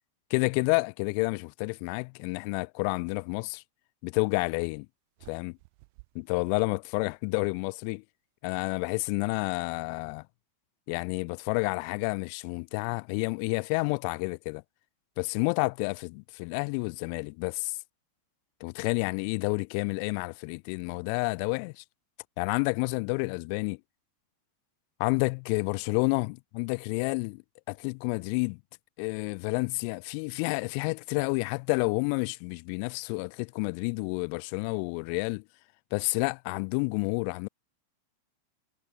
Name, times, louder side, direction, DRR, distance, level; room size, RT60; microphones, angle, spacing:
voice 1, 0.3-3.6 4.0-4.9 5.3-5.6 6.2-8.0 8.4-10.2 10.9-14.6 15.2-17.8 18.6-21.8 22.4-23.8 25.0-27.4 27.7-28.6 29.0-35.4 35.9-37.5, left 39 dB, 45° left, 0.4 m, -30 dB
sound 1, 5.2-7.5, right 29 dB, 45° right, 3.0 m, -57 dB
figure-of-eight pair, 90°, 0 cm